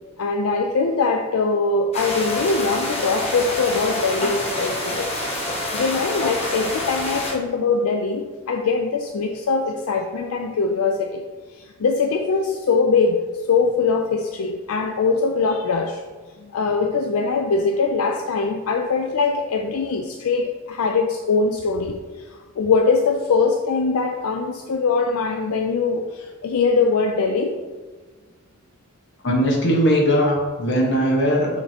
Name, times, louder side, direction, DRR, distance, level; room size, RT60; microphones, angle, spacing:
voice 1, 0.2-11.2 11.5-16.0 16.5-22.0 22.6-27.6, left 4 dB, 75° left, 4 dB, 0.4 m, -22 dB
sound 1, 1.9-7.3, left 1 dB, 30° left, 1.1 m, -27 dB
voice 2, 29.2-31.6, equal, 55° left, -1 dB, 1.3 m, -19 dB
6.5 x 5.1 x 2.8 m, 1.3 s
head